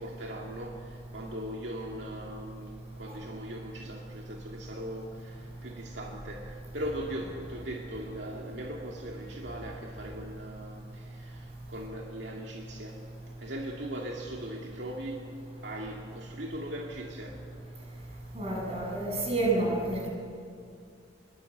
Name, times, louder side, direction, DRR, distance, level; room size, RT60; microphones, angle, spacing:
voice 1, 0.0-13.0 13.4-15.2 15.6-17.4, right 1 dB, 65° right, -1 dB, 2.2 m, -40 dB
voice 2, 18.3-20.1, right 2 dB, 30° right, -2 dB, 7.5 m, -29 dB
27.5 x 22.5 x 8.0 m, 2.4 s
head